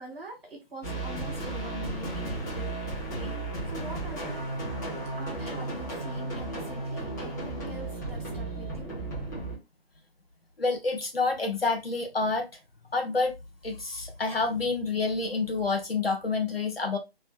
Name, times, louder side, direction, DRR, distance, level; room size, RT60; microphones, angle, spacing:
voice 1, 0.0-2.7 3.1-3.4 3.7-4.5 5.2-8.9, left 1 dB, ahead, 0.7 m, -43 dB
sound 1, 0.8-9.6, right 2 dB, 20° left, 1.1 m, -34 dB
voice 2, 10.6-12.5 12.9-13.4 13.6-17.0, left 3 dB, 75° left, 1.1 m, -28 dB
3.2 x 3.1 x 2.4 m
figure-of-eight pair, 150°, 30 cm